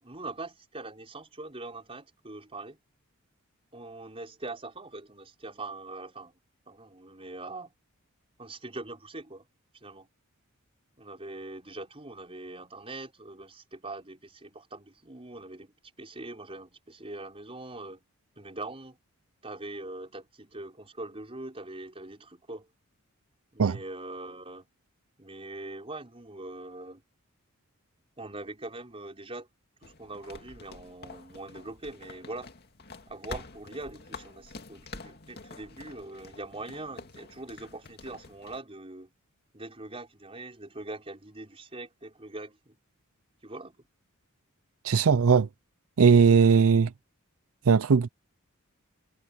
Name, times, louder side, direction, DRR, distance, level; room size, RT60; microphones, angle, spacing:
voice 1, 0.0-2.8 3.7-6.3 6.7-7.7 8.4-9.5 9.8-10.1 11.0-18.0 18.4-19.0 19.4-22.7 23.5-24.7 25.2-27.0 28.2-29.5 29.8-32.5 33.1-39.1 39.5-42.8 43.4-43.8, right 2 dB, 25° right, 4.8 m, -42 dB
sound 1, 29.8-38.6, left 3 dB, 50° left, 2.5 m, -47 dB
voice 2, 44.8-45.5 46.0-46.9 47.7-48.1, right 6 dB, 75° right, 0.5 m, -19 dB
head